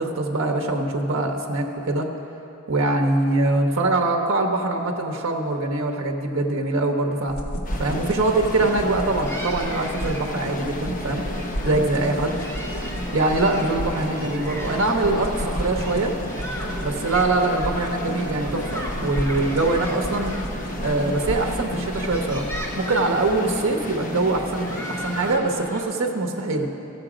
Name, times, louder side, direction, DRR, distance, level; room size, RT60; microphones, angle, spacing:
voice 1, 0.0-2.1 2.7-7.4 7.8-12.3 13.1-16.1 16.8-20.4 20.8-22.5 22.8-26.7, right 2 dB, 65° right, 2 dB, 0.8 m, -23 dB
sound 1, 7.3-22.6, equal, 85° left, 1.1 m, -33 dB
sound 2, 7.6-25.4, left 1 dB, 40° left, 0.7 m, -33 dB
sound 3, 8.1-25.8, right 1 dB, 15° left, 1.0 m, -38 dB
14.5 x 6.7 x 4.9 m, 2.9 s
head